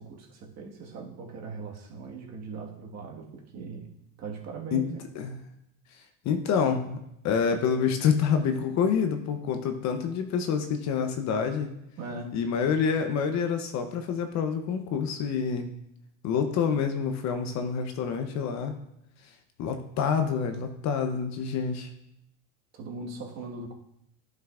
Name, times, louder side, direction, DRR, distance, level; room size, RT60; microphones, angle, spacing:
voice 1, 0.0-3.9 4.2-5.1 12.0-12.4 22.7-23.7, right 4 dB, 40° right, -1 dB, 1.6 m, -40 dB
voice 2, 6.2-7.0 7.2-11.7 12.3-15.7 16.2-18.8 19.6-21.9, left 6 dB, 45° left, 7 dB, 0.8 m, -27 dB
11.0 x 5.7 x 2.5 m, 0.80 s
supercardioid pair, 130°, 41 cm